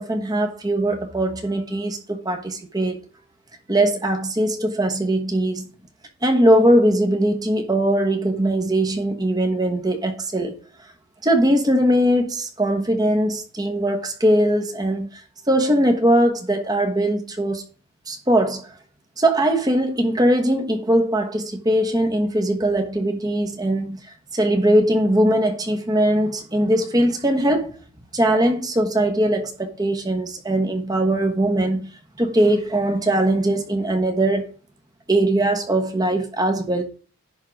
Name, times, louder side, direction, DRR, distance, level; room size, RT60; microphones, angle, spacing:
voice 1, 0.0-3.0 3.7-5.7 6.2-10.5 11.2-15.2 15.5-17.6 18.1-18.7 19.2-24.0 24.3-27.7 28.1-31.9 32.2-34.5 35.1-36.8, right 1 dB, 15° right, 1.2 m, -20 dB
10.5 x 3.8 x 6.2 m
head